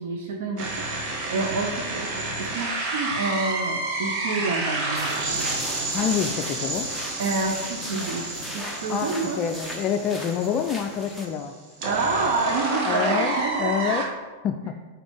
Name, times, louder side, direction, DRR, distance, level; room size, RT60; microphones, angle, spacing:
voice 1, 0.0-5.6 7.2-9.4 11.8-13.9 14.6-14.7, right 3 dB, 70° right, 1 dB, 0.8 m, -29 dB
sound 1, 0.6-14.0, right 2 dB, 45° right, 1.6 m, -30 dB
sound 2, 4.9-11.3, equal, 5° right, 1.0 m, -37 dB
voice 2, 5.9-6.9 8.9-11.5 12.9-14.0 14.4-14.8, left 8 dB, 35° left, 6 dB, 0.4 m, -27 dB
9.3 x 4.3 x 3.6 m, 1.4 s
supercardioid pair, 135°, 0 cm